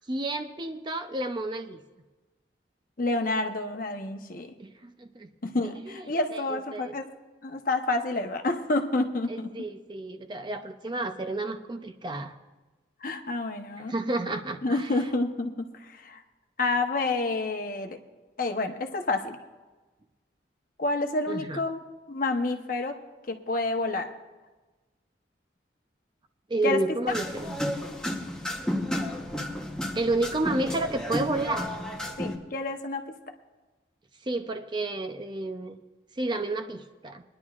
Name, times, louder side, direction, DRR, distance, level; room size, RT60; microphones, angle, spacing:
voice 1, 0.1-1.8 4.6-5.3 5.9-6.0 6.3-6.9 9.3-12.4 13.9-14.9 21.3-21.6 26.5-27.6 29.9-31.8 34.2-35.8 36.1-37.2, right 2 dB, 25° right, 7 dB, 0.5 m, -31 dB
voice 2, 3.0-4.5 5.4-7.1 7.4-9.5 13.0-13.9 14.2-14.3 14.6-16.2 16.6-18.0 18.4-19.4 20.8-21.8 22.1-23.0 23.3-24.1 26.6-26.8 27.1-27.2 32.2-33.1, left 2 dB, 50° left, 4 dB, 0.9 m, -29 dB
sound 1, 27.1-32.4, left 1 dB, 5° left, 1.0 m, -32 dB
22.5 x 10.5 x 2.4 m, 1.2 s
head